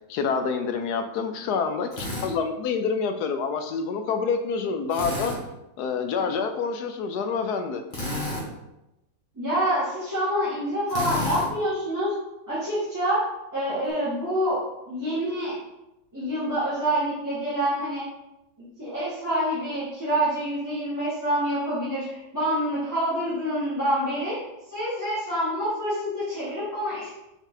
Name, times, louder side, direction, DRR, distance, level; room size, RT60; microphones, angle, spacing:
voice 1, 0.1-5.4 5.8-7.8, left 5 dB, 70° left, 7 dB, 1.1 m, -27 dB
Drill, 1.9-2.3 4.9-5.4 7.9-8.5 10.9-11.5, left 1 dB, 30° left, 1.6 m, -30 dB
voice 2, 9.4-12.1 12.5-14.6 14.9-15.6 16.1-18.0 18.8-24.4 24.7-27.1, equal, 10° right, -11 dB, 1.9 m, -27 dB
7.0 x 4.1 x 3.9 m, 0.92 s
omnidirectional pair, 1.9 m